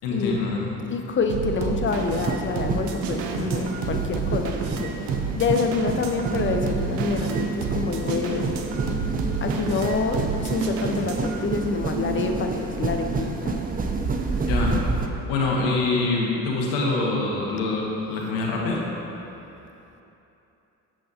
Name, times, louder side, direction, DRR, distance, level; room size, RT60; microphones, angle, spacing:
voice 1, 0.0-0.8 14.5-14.7 15.3-18.8, left 3 dB, 65° left, -2 dB, 1.1 m, -25 dB
voice 2, 0.9-8.7 9.4-13.6, left 4 dB, 25° left, 4 dB, 0.6 m, -27 dB
sound 1, 1.3-11.4, right 5 dB, 65° right, 0.8 m, -31 dB
sound 2, 1.9-15.1, right 3 dB, 20° right, 0.5 m, -29 dB
7.4 x 6.9 x 2.7 m, 3.0 s
hypercardioid pair, 55°, 47 cm